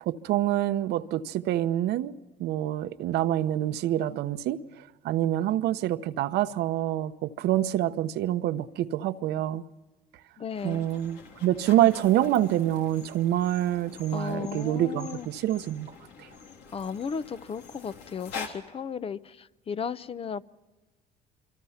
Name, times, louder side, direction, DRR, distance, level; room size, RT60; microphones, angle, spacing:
voice 1, 0.0-2.1 2.4-9.6 10.6-15.9 16.2-16.3, right 13 dB, 80° right, 1.0 m, -26 dB
voice 2, 10.4-10.9 14.1-15.3 16.7-20.4, left 6 dB, 35° left, 0.7 m, -35 dB
sound 1, 10.5-18.5, left 5 dB, 85° left, 3.5 m, -45 dB
26.0 x 25.0 x 5.8 m
cardioid pair, 110°, 17 cm